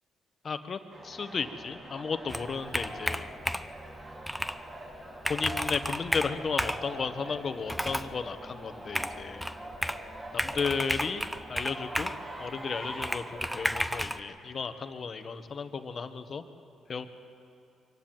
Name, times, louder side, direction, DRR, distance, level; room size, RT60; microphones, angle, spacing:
voice 1, 0.4-3.3 5.3-9.5 10.3-11.2 11.5-12.1 12.4-16.4 16.9-17.1, left 5 dB, 45° left, 9 dB, 1.4 m, -34 dB
sound 1, 0.9-13.8, right 1 dB, 30° right, 6.2 m, -43 dB
Computer keyboard, 2.3-3.8 4.3-4.6 4.9-5.0 5.2-6.9 7.7-8.1 8.9-10.1 10.4-12.2 13.0-14.2, equal, ahead, 0.7 m, -32 dB
23.5 x 16.5 x 9.1 m, 2.7 s
cardioid pair, 90°, 0 cm